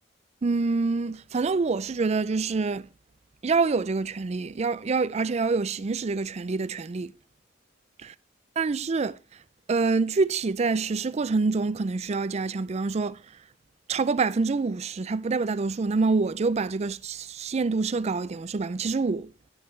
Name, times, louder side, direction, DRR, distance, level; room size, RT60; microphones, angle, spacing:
voice 1, 0.4-2.9 3.4-7.1 8.6-9.2 9.7-13.2 13.9-19.3, right 4 dB, 35° right, 0.4 m, -26 dB
10.5 x 9.8 x 3.2 m
head